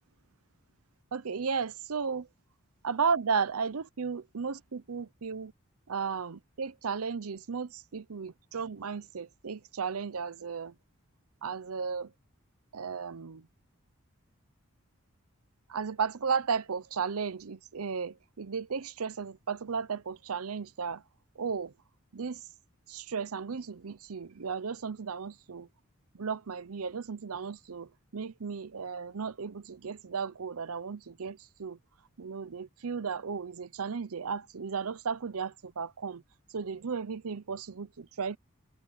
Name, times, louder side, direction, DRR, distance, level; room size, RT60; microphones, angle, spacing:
voice 1, 1.1-2.3 2.8-5.5 5.9-10.7 11.4-12.1 12.7-13.5 15.7-21.0 21.4-21.7 22.1-22.4 22.9-25.7 26.1-31.8 32.2-36.2 36.5-38.4, right 5 dB, 80° right, 0.7 m, -34 dB
head